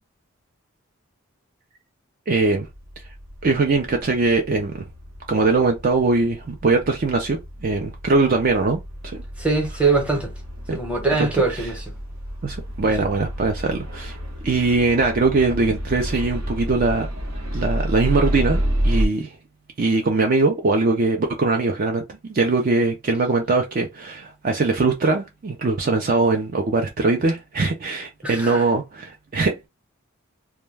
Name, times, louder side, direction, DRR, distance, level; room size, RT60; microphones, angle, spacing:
voice 1, 2.3-2.7 3.4-4.8 5.3-9.2 10.7-10.8 11.2-11.4 12.4-14.2 14.4-17.1 17.5-19.3 19.8-29.7, right 3 dB, 40° right, 0.4 m, -21 dB
sound 1, 2.6-19.1, equal, 90° right, 1.0 m, -30 dB
voice 2, 9.4-10.3 10.7-11.9 13.0-13.1 28.2-28.6, right 3 dB, 5° right, 0.8 m, -22 dB
2.2 x 2.2 x 3.2 m
head